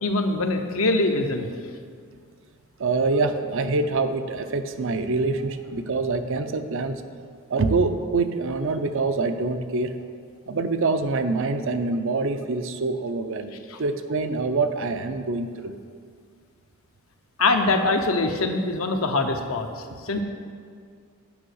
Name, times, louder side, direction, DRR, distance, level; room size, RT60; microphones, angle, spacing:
voice 1, 0.0-1.5 13.7-13.8 17.4-19.7 20.0-20.2, left 2 dB, 70° left, 5 dB, 0.8 m, -23 dB
voice 2, 2.8-7.0 7.5-9.9 10.5-13.5 13.8-15.7, right 3 dB, 65° right, 9 dB, 0.6 m, -25 dB
8.8 x 5.4 x 6.4 m, 2.1 s
head